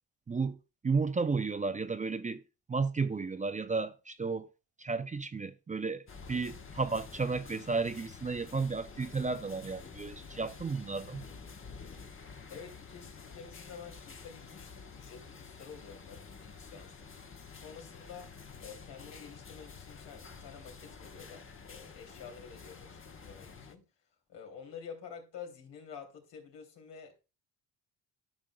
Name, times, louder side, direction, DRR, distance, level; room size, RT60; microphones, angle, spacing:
voice 1, 0.3-0.6 0.8-2.4 2.7-4.5 4.8-6.0 6.3-11.3, right 4 dB, 20° right, 0.5 m, -33 dB
sound 1, 6.1-23.7, left 5 dB, 30° left, 1.1 m, -49 dB
voice 2, 12.5-17.1 17.6-23.9 24.3-27.2, left 6 dB, 80° left, 2.9 m, -49 dB
13.0 x 6.3 x 2.2 m
cardioid pair, 85°, 42 cm